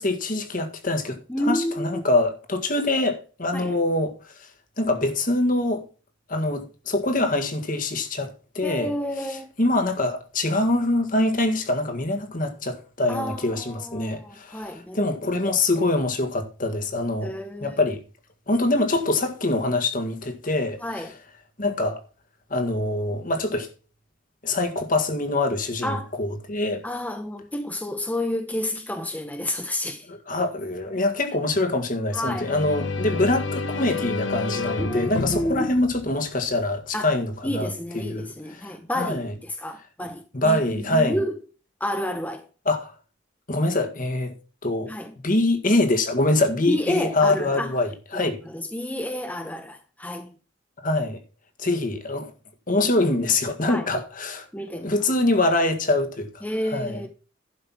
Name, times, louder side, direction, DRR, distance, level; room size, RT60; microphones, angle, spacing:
voice 1, 0.0-4.1 4.8-5.8 6.3-17.3 17.6-18.0 18.5-21.1 21.6-22.0 22.5-23.7 24.4-26.8 30.1-39.3 40.0-41.2 42.6-42.9 43.5-44.3 44.6-44.9 45.2-48.4 50.8-51.2 51.6-52.3 52.7-54.5 54.7-57.0, left 2 dB, 45° left, 1.8 m, -24 dB
voice 2, 1.3-2.0 3.5-3.8 8.6-9.5 13.1-15.1 17.2-17.8 20.8-21.1 25.8-26.1 26.8-30.1 32.1-32.5 34.8-35.7 36.9-37.1 37.4-41.4 41.8-42.4 44.9-45.1 46.7-47.7 48.1-50.3 53.7-53.9 54.5-54.9 56.4-57.1, left 1 dB, 10° left, 0.8 m, -30 dB
sound 1, 32.1-36.8, left 3 dB, 75° left, 1.0 m, -30 dB
11.5 x 5.6 x 5.9 m
head